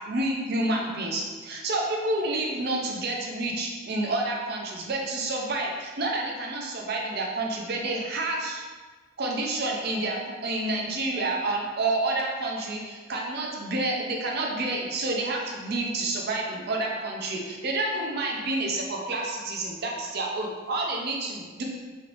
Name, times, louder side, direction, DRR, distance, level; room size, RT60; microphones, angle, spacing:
voice 1, 0.0-8.6 9.2-21.6, right 2 dB, 50° right, -1 dB, 0.5 m, -29 dB
3.2 x 3.1 x 2.5 m, 1.4 s
head